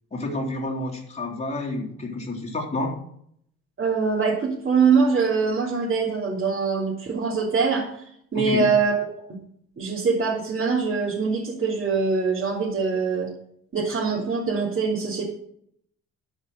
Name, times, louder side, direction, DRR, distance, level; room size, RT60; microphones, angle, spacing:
voice 1, 0.1-3.0 8.3-8.7, left 2 dB, 20° left, -1 dB, 3.3 m, -29 dB
voice 2, 3.8-8.0 8.3-9.3 9.8-13.3 13.7-15.3, right 5 dB, 45° right, -4 dB, 3.0 m, -23 dB
12.0 x 5.3 x 7.9 m, 0.69 s
cardioid pair, 90°, 30 cm